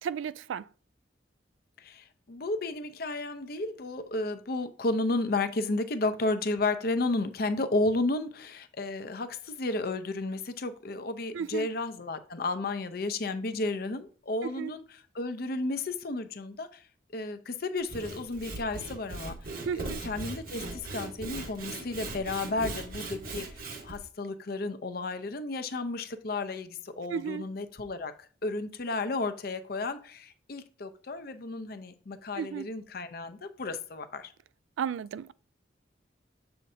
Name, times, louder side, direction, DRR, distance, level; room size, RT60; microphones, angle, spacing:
voice 1, 0.0-0.7 11.3-11.7 14.4-14.7 19.6-20.0 27.1-27.5 32.3-32.7 34.8-35.3, right 7 dB, 85° right, 0.3 m, -34 dB
voice 2, 1.8-14.8 15.1-16.8 17.1-19.4 19.8-23.5 23.8-28.1 28.4-34.3, left 2 dB, 55° left, 0.6 m, -32 dB
Sawing / Wood, 17.8-24.0, right 2 dB, 50° right, 1.1 m, -39 dB
7.5 x 5.7 x 2.7 m
head